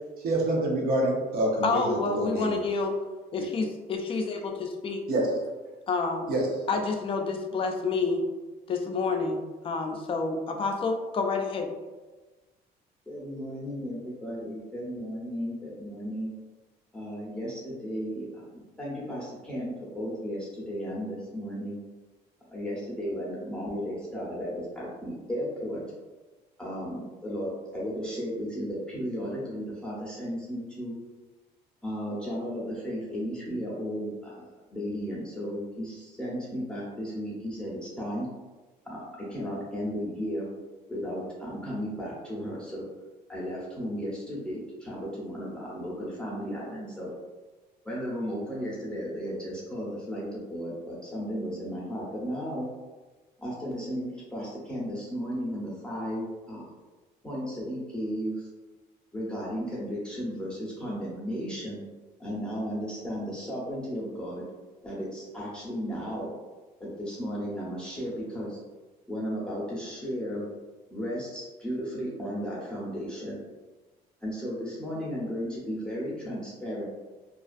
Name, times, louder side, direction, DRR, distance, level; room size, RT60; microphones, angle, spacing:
voice 1, 0.2-2.6 3.4-3.5 5.1-5.4 6.3-6.5, right 1 dB, 60° right, -1 dB, 0.7 m, -27 dB
voice 2, 1.6-2.9 3.3-5.0 5.9-6.3 6.7-8.3 8.7-11.7, left 4 dB, 35° left, 3 dB, 0.4 m, -29 dB
voice 3, 13.1-16.3 16.9-21.8 22.5-25.8 26.6-30.9 31.8-38.3 38.8-40.5 40.9-42.8 43.3-47.1 47.8-52.7 53.4-56.7 57.2-58.5 59.1-61.8 62.2-64.5 64.8-66.3 66.8-68.6 69.1-70.4 70.9-73.4 74.2-76.8, equal, 5° left, -7 dB, 0.7 m, -34 dB
2.4 x 2.3 x 2.4 m, 1.2 s
cardioid pair, 110°, 17 cm